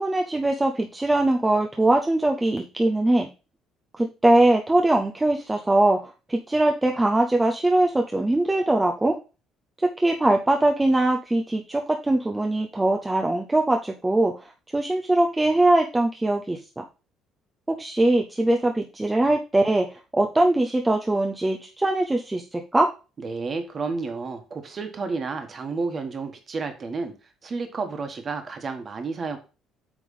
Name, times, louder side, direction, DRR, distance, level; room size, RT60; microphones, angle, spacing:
voice 1, 0.0-3.3 4.0-9.2 10.0-14.3 14.7-16.8 17.7-22.9, right 1 dB, 10° right, 2 dB, 0.6 m, -22 dB
voice 2, 23.2-27.1 27.4-29.4, right 4 dB, 30° right, 6 dB, 1.4 m, -31 dB
8.4 x 3.5 x 5.3 m, 0.32 s
cardioid pair, 150°, 0 cm